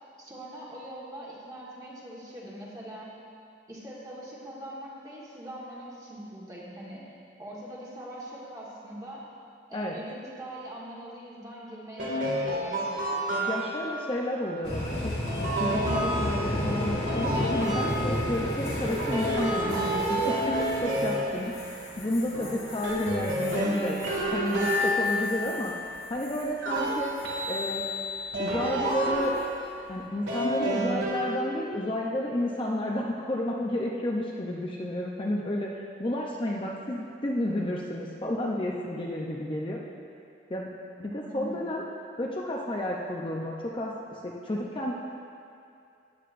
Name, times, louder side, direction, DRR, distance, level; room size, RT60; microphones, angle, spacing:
voice 1, 0.2-3.1 3.7-7.1 7.4-9.2 9.7-12.8 23.6-23.9 41.3-41.7, right 1 dB, 20° right, -5 dB, 1.5 m, -42 dB
sound 1, 12.0-13.9 15.3-18.4 18.8-21.9 22.3-25.9 26.6-29.7 30.3-31.7, equal, 80° right, 2.2 m, -30 dB
voice 2, 13.5-24.0 24.3-25.7 26.1-27.1 27.4-27.8 28.4-29.3 29.9-39.8 40.5-40.7 41.0-41.8 42.2-44.9, left 1 dB, 25° left, -2 dB, 0.6 m, -31 dB
sound 2, 14.6-26.5 26.8-27.3 29.2-29.5, left 1 dB, 55° left, 2.2 m, -34 dB
13.0 x 9.7 x 2.6 m, 2.5 s
head